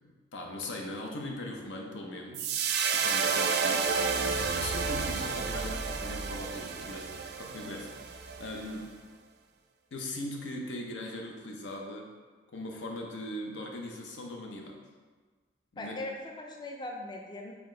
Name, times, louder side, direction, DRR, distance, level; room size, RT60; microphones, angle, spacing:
voice 1, 0.0-2.5 2.9-4.0 4.3-7.1 7.4-8.9 9.9-12.1 12.5-14.8 15.7-16.0, left 1 dB, 85° left, 1 dB, 0.7 m, -40 dB
sound 1, 2.3-8.7, right 5 dB, 60° right, 0.4 m, -31 dB
voice 2, 15.8-17.5, left 2 dB, 25° left, 1 dB, 0.3 m, -39 dB
4.3 x 3.5 x 3.2 m, 1.4 s
head